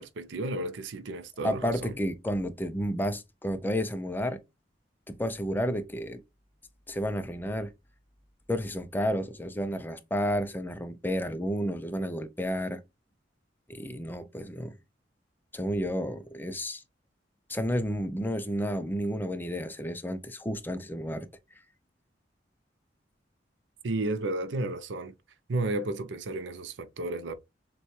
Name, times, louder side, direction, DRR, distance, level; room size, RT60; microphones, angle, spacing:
voice 1, 0.0-1.9 23.8-25.1 25.5-27.3, right 2 dB, 85° right, 0.5 m, -32 dB
voice 2, 1.4-4.4 5.1-6.2 6.9-7.7 8.5-12.8 13.7-14.7 15.5-16.8 17.5-21.3, equal, 10° left, 0.5 m, -31 dB
6.7 x 2.3 x 3.1 m
head